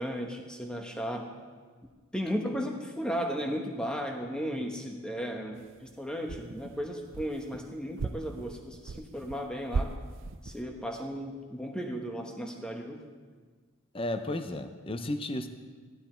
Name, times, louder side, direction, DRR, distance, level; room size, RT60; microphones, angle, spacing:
voice 1, 0.0-1.3 2.1-10.0 10.4-13.0, equal, 5° left, 3 dB, 1.1 m, -35 dB
sound 1, 5.6-5.9 6.2-7.6 8.0-9.4 9.7-10.6, right 4 dB, 60° right, 0.5 m, -37 dB
voice 2, 13.9-15.5, left 1 dB, 25° left, 9 dB, 0.6 m, -33 dB
15.0 x 11.5 x 4.5 m, 1.5 s
head